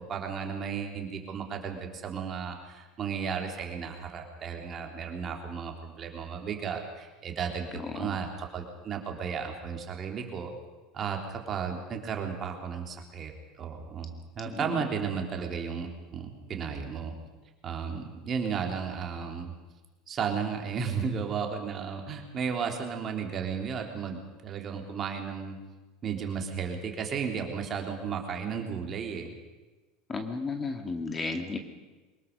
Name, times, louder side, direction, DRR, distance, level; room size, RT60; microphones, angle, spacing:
voice 1, 0.0-10.5 10.9-13.3 13.6-17.1 17.6-19.5 20.1-25.6 26.0-29.3, right 6 dB, 40° right, 3 dB, 3.5 m, -34 dB
voice 2, 7.7-8.2 14.5-14.7 30.1-31.6, left 3 dB, 25° left, 6 dB, 2.3 m, -34 dB
23.5 x 20.5 x 5.4 m, 1.2 s
hypercardioid pair, 85°, 0 cm